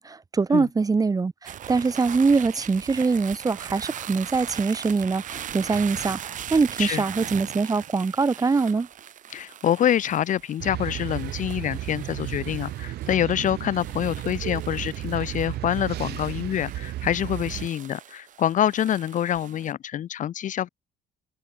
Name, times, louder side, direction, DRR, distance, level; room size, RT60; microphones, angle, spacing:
voice 1, 0.0-6.2 6.5-8.9, right 4 dB, 20° right, 1.2 m, -23 dB
sound 1, 1.5-19.7, right 10 dB, 50° right, 1.2 m, -40 dB
voice 2, 9.3-20.7, left 10 dB, 50° left, 0.7 m, -26 dB
sound 2, 10.6-17.7, right 15 dB, 75° right, 3.5 m, -33 dB
cardioid pair, 110°, 17 cm